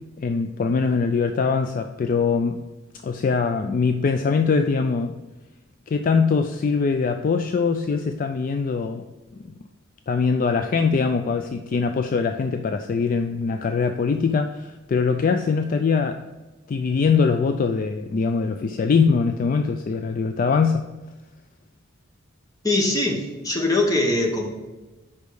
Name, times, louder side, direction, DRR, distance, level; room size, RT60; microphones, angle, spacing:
voice 1, 0.2-2.6 3.0-5.2 5.9-9.0 10.1-16.2 16.7-20.8, left 5 dB, 40° left, 7 dB, 0.3 m, -22 dB
voice 2, 22.6-24.5, left 2 dB, 20° left, 1 dB, 1.1 m, -22 dB
5.3 x 5.2 x 6.2 m, 1.1 s
head